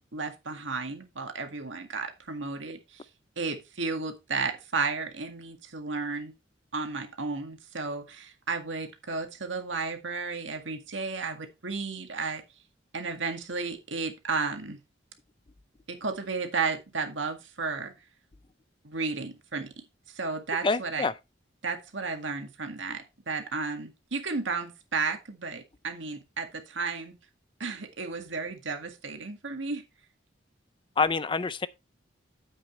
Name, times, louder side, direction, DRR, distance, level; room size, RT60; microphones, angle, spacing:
voice 1, 0.0-3.0 3.4-6.3 6.7-12.4 12.9-14.8 15.9-17.9 18.8-19.7 20.2-21.1 21.6-27.2 27.6-29.8, right 4 dB, 90° right, 1.9 m, -33 dB
voice 2, 20.6-21.1 31.0-31.7, left 4 dB, 25° left, 0.4 m, -26 dB
9.4 x 8.1 x 3.1 m
head